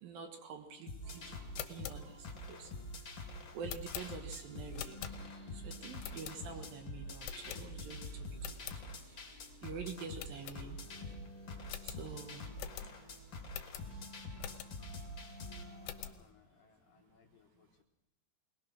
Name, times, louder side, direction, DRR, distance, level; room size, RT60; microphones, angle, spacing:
voice 1, 0.0-1.3 1.7-2.7 3.5-5.0 5.6-8.0 8.5-8.6 9.6-10.8 11.9-12.4, right 5 dB, 65° right, 6 dB, 2.8 m, -46 dB
sound 1, 0.9-15.6, left 2 dB, 35° left, 2.5 m, -46 dB
sound 2, 1.0-16.1, left 1 dB, 10° right, 5.5 m, -56 dB
sound 3, 1.4-5.5 6.0-6.7 7.2-8.0 8.3-8.8 9.3-9.4 9.6-9.7 10.2-11.1 11.3-11.4 11.7-15.0 15.4-16.2, left 11 dB, 90° left, 3.1 m, -47 dB
voice 2, 15.6-17.8, left 7 dB, 70° left, 3 dB, 2.4 m, -66 dB
22.0 x 19.5 x 6.2 m, 0.90 s
omnidirectional pair, 4.9 m